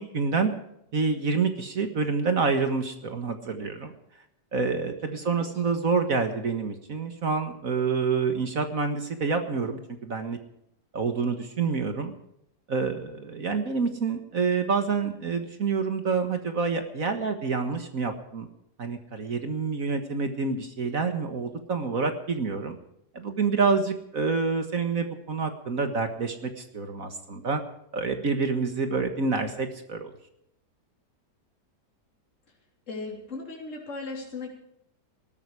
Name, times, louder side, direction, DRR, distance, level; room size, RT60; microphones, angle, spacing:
voice 1, 0.1-0.5 0.9-3.9 4.5-10.4 10.9-12.1 12.7-18.5 18.8-22.8 23.1-27.6 27.9-30.1, right 4 dB, 55° right, 7 dB, 1.9 m, -27 dB
voice 2, 32.9-34.5, left 3 dB, 45° left, -2 dB, 3.8 m, -37 dB
20.0 x 13.0 x 4.8 m, 0.77 s
omnidirectional pair, 1.8 m